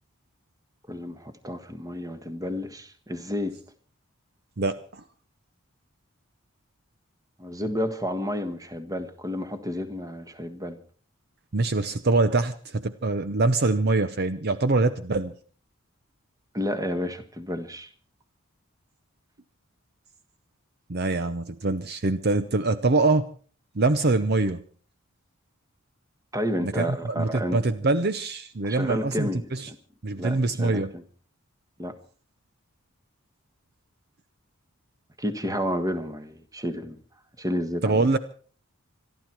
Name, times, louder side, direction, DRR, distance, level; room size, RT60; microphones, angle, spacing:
voice 1, 0.9-3.6 7.4-10.8 16.5-17.9 26.3-27.6 28.6-29.8 30.1-31.0 31.8-32.0 35.2-37.0 37.4-38.1, equal, 15° right, 10 dB, 1.5 m, -31 dB
voice 2, 4.6-5.0 11.5-15.3 20.9-23.3 23.7-24.6 26.6-29.7 30.0-30.9 37.8-38.2, right 3 dB, 50° right, 12 dB, 0.7 m, -24 dB
26.0 x 11.5 x 4.5 m, 0.42 s
head